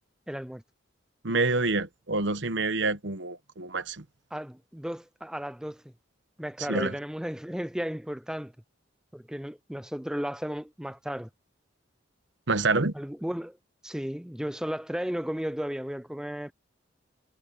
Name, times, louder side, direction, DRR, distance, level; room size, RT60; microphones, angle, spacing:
voice 1, 0.3-0.6 4.3-5.8 6.4-8.5 9.1-11.3 12.9-13.6 13.8-16.5, equal, 5° right, 0.4 m, -34 dB
voice 2, 1.2-4.0 6.7-6.9 12.5-12.9, right 3 dB, 65° right, 1.1 m, -27 dB
head